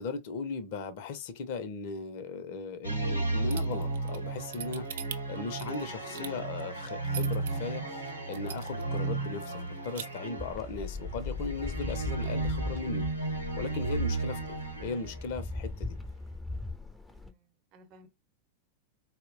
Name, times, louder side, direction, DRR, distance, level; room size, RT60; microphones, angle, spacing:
voice 1, 0.0-4.9 5.3-13.1 13.6-16.0, left 4 dB, 50° left, 0.5 m, -37 dB
sound 1, 2.8-15.4, right 3 dB, 85° right, 0.9 m, -34 dB
sound 2, 3.5-7.5 8.0-8.1 8.3-9.0 9.3-9.4 9.7-10.0, right 8 dB, 60° right, 0.4 m, -41 dB
sound 3, 10.4-17.3, left 2 dB, ahead, 0.5 m, -38 dB
voice 2, 17.1-18.1, equal, 40° right, 0.8 m, -59 dB
4.1 x 2.1 x 2.5 m
figure-of-eight pair, 90°, 0 cm